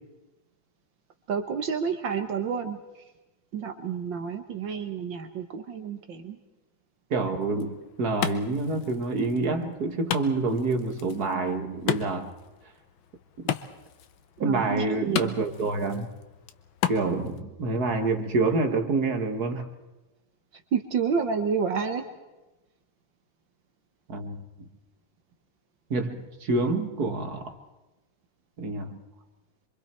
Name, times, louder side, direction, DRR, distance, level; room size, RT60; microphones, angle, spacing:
voice 1, 1.3-2.8 3.5-6.4 14.4-15.3 20.7-22.0, right 6 dB, 70° right, 6 dB, 1.9 m, -29 dB
voice 2, 7.1-12.3 14.4-16.1 16.9-19.7 24.1-24.5 25.9-27.5 28.6-29.0, right 3 dB, 50° right, 6 dB, 2.0 m, -27 dB
Wood, 7.4-17.4, left 10 dB, 80° left, 1.7 m, -36 dB
27.0 x 24.0 x 4.5 m, 1.1 s
omnidirectional pair, 2.2 m